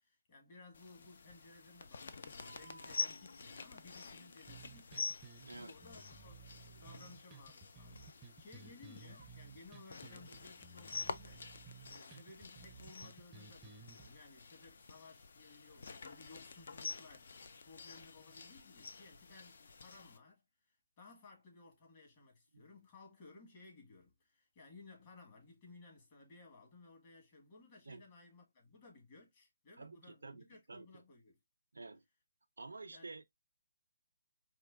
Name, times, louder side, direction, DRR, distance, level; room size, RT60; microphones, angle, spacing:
voice 1, 0.0-5.2 5.5-11.5 11.8-31.4 32.9-33.1, left 3 dB, 35° left, 1.6 m, -59 dB
sound 1, 0.7-20.2, left 4 dB, 60° left, 0.4 m, -48 dB
sound 2, 2.4-4.8 5.5-8.5 9.0-9.3, equal, 85° left, 1.3 m, -63 dB
sound 3, 4.5-14.1, right 5 dB, 15° right, 0.5 m, -56 dB
voice 2, 29.8-31.0 31.7-32.0 32.6-33.2, right 3 dB, 90° right, 0.4 m, -50 dB
4.3 x 2.5 x 2.4 m
hypercardioid pair, 155°, 0 cm